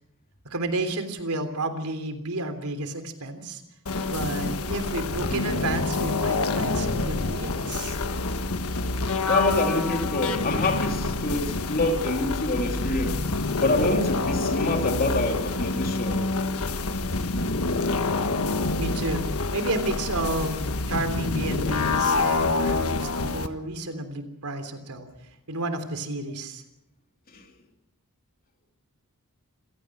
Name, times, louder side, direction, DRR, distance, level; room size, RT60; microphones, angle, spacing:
voice 1, 0.4-3.6 4.1-8.0 8.7-8.8 18.8-19.2 19.5-20.6 20.9-25.1 25.5-26.6, right 2 dB, 85° right, 3.3 m, -31 dB
sound 1, 3.9-23.5, left 3 dB, 70° left, 1.4 m, -27 dB
voice 2, 9.3-13.2 13.6-16.3 27.3-27.4, left 2 dB, 40° left, 3.2 m, -26 dB
27.0 x 17.5 x 6.2 m
head